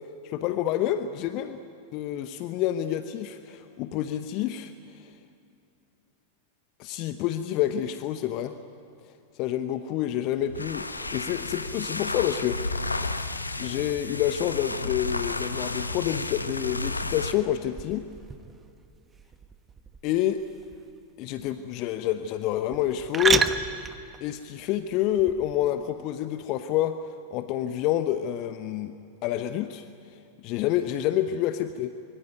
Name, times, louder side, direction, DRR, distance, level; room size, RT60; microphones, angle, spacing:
voice 1, 0.2-1.6 1.9-5.2 6.8-8.6 9.3-12.9 13.6-18.1 20.0-20.4 21.2-23.5 24.2-27.0 27.3-28.9 29.2-30.2 30.4-31.9, left 12 dB, 40° left, 10 dB, 0.9 m, -28 dB
sound 1, 10.4-17.4, left 2 dB, 80° left, 1.1 m, -32 dB
sound 2, 10.6-25.7, right 5 dB, 20° right, 1.2 m, -35 dB
25.0 x 23.5 x 9.4 m, 2.7 s
figure-of-eight pair, 90°, 0 cm